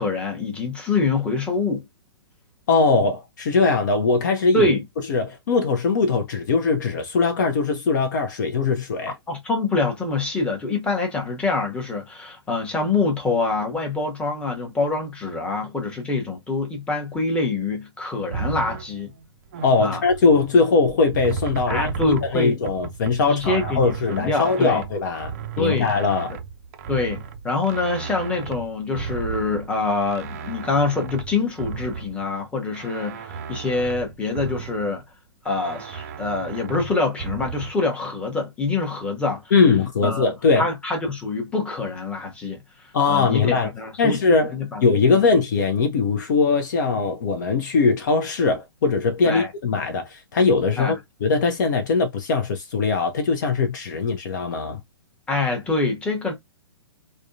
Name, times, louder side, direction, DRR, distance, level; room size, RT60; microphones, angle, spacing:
voice 1, 0.0-1.8 4.5-4.8 9.3-19.1 19.8-20.0 21.7-22.6 23.3-24.8 25.6-25.9 26.9-35.0 35.4-39.4 40.0-42.6 43.1-44.2 44.5-44.8 45.1-45.2 49.3-49.5 50.8-50.9 55.3-56.3, left 3 dB, 10° left, 0.9 m, -25 dB
voice 2, 2.7-4.7 5.1-9.2 19.6-26.3 39.5-40.7 42.9-43.7 44.0-44.5 44.8-54.8, left 4 dB, 45° left, 0.5 m, -21 dB
sound 1, 18.3-20.5 20.9-32.3 32.7-35.0 35.4-37.7, right 6 dB, 35° right, 0.4 m, -35 dB
3.5 x 2.1 x 2.5 m
figure-of-eight pair, 115°, 14 cm